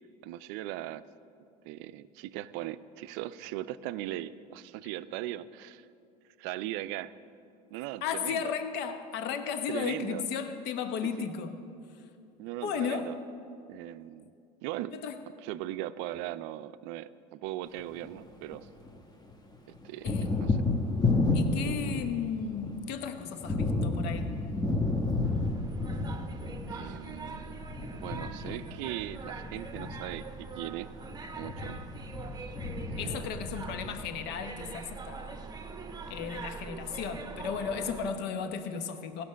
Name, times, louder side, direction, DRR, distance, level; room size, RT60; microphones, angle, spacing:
voice 1, 0.2-1.0 1.6-5.9 6.4-7.1 7.7-8.5 9.7-10.2 11.2-11.3 12.4-13.1 13.7-14.3 14.6-15.0 15.4-18.7 19.8-20.6 26.7-27.6 27.9-30.9 31.4-31.8 32.9-33.4, right 14 dB, 65° right, 15 dB, 0.5 m, -39 dB
voice 2, 8.0-11.6 12.6-13.1 14.9-15.1 20.0-20.5 21.3-24.4 33.0-35.4 36.1-39.2, left 7 dB, 60° left, 8 dB, 0.9 m, -35 dB
Thunder, 17.8-19.0 19.3-34.5, left 2 dB, 20° left, 1.1 m, -32 dB
sound 1, 25.2-38.1, right 4 dB, 20° right, 0.9 m, -43 dB
16.5 x 6.0 x 6.3 m, 2.5 s
hypercardioid pair, 80°, 19 cm